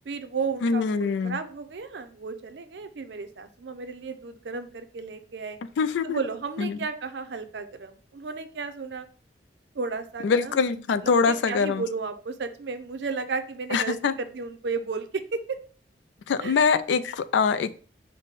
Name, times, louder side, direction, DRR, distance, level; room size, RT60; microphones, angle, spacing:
voice 1, 0.1-5.6 6.0-9.1 9.7-10.6 11.0-15.6 16.4-16.6, right 4 dB, 70° right, 9 dB, 0.5 m, -33 dB
voice 2, 0.6-1.4 5.8-6.2 6.6-6.8 10.2-11.8 13.7-14.1 16.3-17.7, left 5 dB, 80° left, 13 dB, 0.3 m, -24 dB
5.2 x 2.1 x 4.0 m, 0.41 s
head